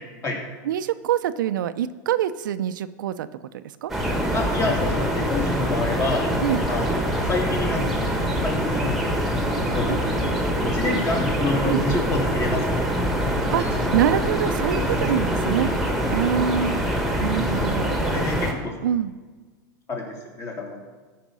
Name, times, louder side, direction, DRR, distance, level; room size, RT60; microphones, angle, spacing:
voice 1, 0.6-3.3 3.5-3.9 6.4-6.6 9.9-10.1 11.6-11.8 13.5-15.7 16.1-16.8 17.2-18.3 18.8-19.2, right 10 dB, 80° right, 12 dB, 0.6 m, -25 dB
sound 1, 3.9-18.5, equal, ahead, 1.6 m, -24 dB
voice 2, 4.3-6.3 6.7-8.1 8.4-9.1 9.7-10.0 10.6-13.0 13.6-13.7 14.8-15.1 15.4-15.5 18.0-18.7 19.9-20.9, left 2 dB, 30° left, 0 dB, 2.8 m, -28 dB
14.0 x 5.2 x 6.2 m, 1.4 s
supercardioid pair, 130°, 10 cm